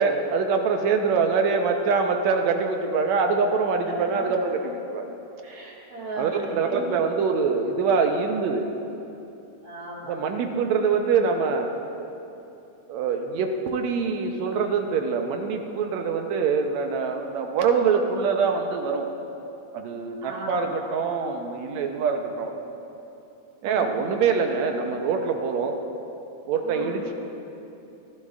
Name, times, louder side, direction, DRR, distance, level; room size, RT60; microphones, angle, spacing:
voice 1, 0.0-5.2 6.2-8.7 10.1-11.7 12.9-19.1 19.7-22.5 23.6-25.8 26.5-27.0, right 5 dB, 70° right, 4 dB, 1.9 m, -24 dB
voice 2, 3.9-4.3 5.4-6.9 9.6-10.5 20.2-20.6 23.6-24.0 26.6-27.0, right 1 dB, 50° right, -4 dB, 2.8 m, -36 dB
25.5 x 12.5 x 2.5 m, 2.9 s
omnidirectional pair, 3.7 m